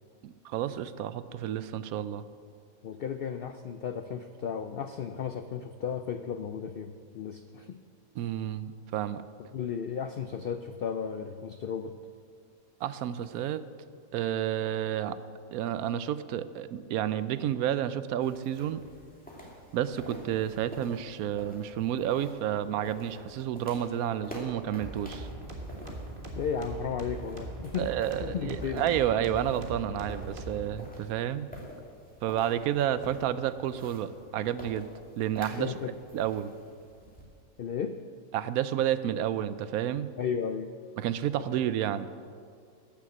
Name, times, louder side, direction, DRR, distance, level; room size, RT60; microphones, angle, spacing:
voice 1, 0.2-2.2 8.2-9.2 12.8-13.6 14.1-15.2 15.5-18.8 19.7-25.3 27.8-31.5 32.2-34.9 35.2-35.7 36.1-36.5 38.3-40.1 41.0-42.1, right 10 dB, 80° right, 14 dB, 1.0 m, -30 dB
voice 2, 2.8-7.8 9.5-11.9 26.3-27.9 28.2-28.8 35.6-36.0 37.6-38.0 40.2-40.7, left 7 dB, 75° left, 8 dB, 0.5 m, -34 dB
sound 1, 18.2-37.2, equal, 5° left, 2.3 m, -48 dB
sound 2, 24.7-30.7, right 1 dB, 35° right, 1.6 m, -41 dB
12.5 x 7.1 x 7.8 m, 2.2 s
omnidirectional pair, 1.5 m